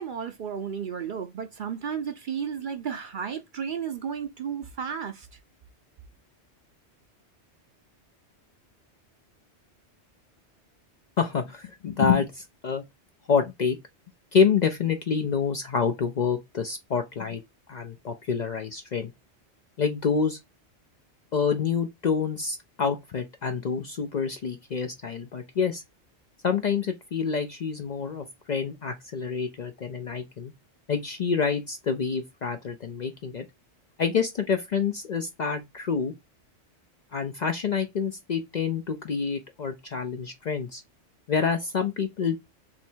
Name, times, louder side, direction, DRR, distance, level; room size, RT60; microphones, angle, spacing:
voice 1, 0.0-5.3, right 7 dB, 55° right, 0.6 m, -33 dB
voice 2, 11.2-12.8 13.3-13.8 14.3-17.4 17.7-19.1 19.8-20.4 21.3-25.8 26.4-30.5 30.9-33.4 34.0-36.1 37.1-40.8 41.3-42.4, left 6 dB, 55° left, 0.5 m, -27 dB
3.2 x 2.8 x 4.3 m
omnidirectional pair, 1.2 m